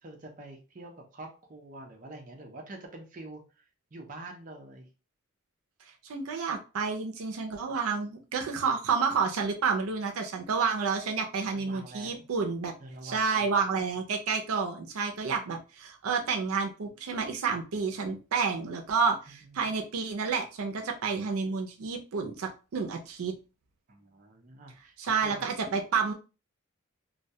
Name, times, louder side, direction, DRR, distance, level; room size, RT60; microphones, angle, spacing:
voice 1, 0.0-3.6 3.9-4.9 11.5-12.2 12.8-13.8 19.4-19.7 23.9-25.5, right 2 dB, 40° right, 1 dB, 0.5 m, -46 dB
voice 2, 6.0-12.7 13.0-23.3 25.0-26.1, right 5 dB, 85° right, 3 dB, 0.5 m, -30 dB
2.2 x 2.1 x 2.7 m, 0.32 s
head